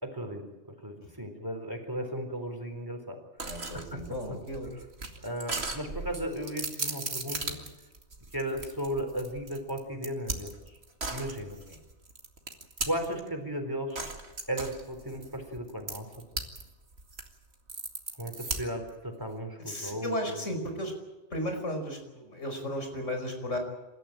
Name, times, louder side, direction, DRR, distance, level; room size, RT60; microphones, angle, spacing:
voice 1, 0.0-3.2 3.9-4.0 5.2-7.6 8.3-10.8 11.1-11.6 12.9-14.2 14.5-16.1 18.2-20.4, right 1 dB, 15° right, 4 dB, 3.9 m, -35 dB
voice 2, 3.4-4.7 7.4-7.6 11.7-11.8 19.7-20.9 21.3-23.6, equal, 90° left, 5 dB, 5.4 m, -35 dB
sound 1, 3.4-13.3 14.0-16.6 16.9-18.9, right 3 dB, 60° right, 2.5 m, -37 dB
28.5 x 14.0 x 8.9 m, 1.1 s
omnidirectional pair, 1.2 m